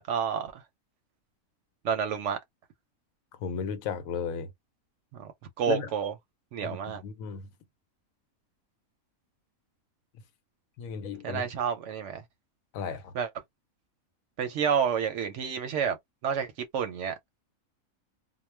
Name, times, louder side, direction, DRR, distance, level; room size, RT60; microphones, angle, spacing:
voice 1, 0.1-0.6 1.8-2.4 5.1-5.3 5.6-6.1 6.5-7.0 11.2-12.2 13.1-13.3 14.4-16.0 16.2-17.1, right 7 dB, 65° right, 0.8 m, -29 dB
voice 2, 3.3-4.5 5.7-5.9 6.6-7.5 10.8-11.4 12.7-13.1, left 6 dB, 80° left, 1.0 m, -34 dB
2.3 x 2.1 x 3.1 m
omnidirectional pair, 1.5 m